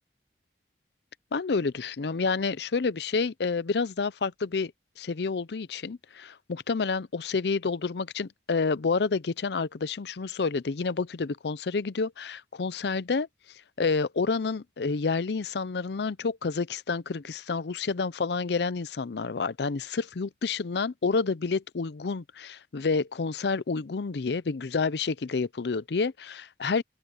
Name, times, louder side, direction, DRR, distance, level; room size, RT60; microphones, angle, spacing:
voice 1, 1.3-4.7 5.0-13.3 13.8-26.8, left 4 dB, 75° left, 0.6 m, -29 dB
open air
head